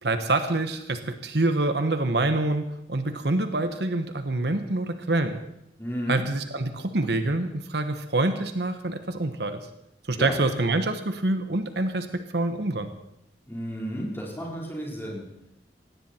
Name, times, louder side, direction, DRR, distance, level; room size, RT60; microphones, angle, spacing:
voice 1, 0.0-5.4 6.1-9.6 10.1-12.9, right 2 dB, 65° right, 8 dB, 1.2 m, -26 dB
voice 2, 5.8-6.2 10.2-10.4 13.5-15.3, equal, 15° left, -3 dB, 4.3 m, -32 dB
18.5 x 16.5 x 4.4 m, 0.81 s
head